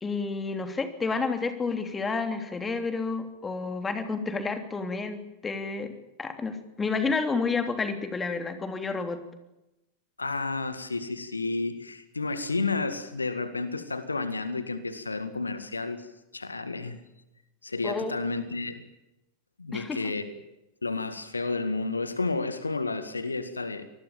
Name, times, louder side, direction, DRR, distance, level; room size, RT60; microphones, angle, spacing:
voice 1, 0.0-5.9 6.2-9.2 17.8-18.1 19.7-20.1, left 4 dB, 15° left, 8 dB, 3.2 m, -30 dB
voice 2, 10.2-16.1 16.3-17.0 17.6-18.8 19.6-20.4 20.8-23.8, left 3 dB, 80° left, 12 dB, 1.8 m, -31 dB
25.5 x 20.0 x 7.4 m, 0.92 s
figure-of-eight pair, 90°, 0 cm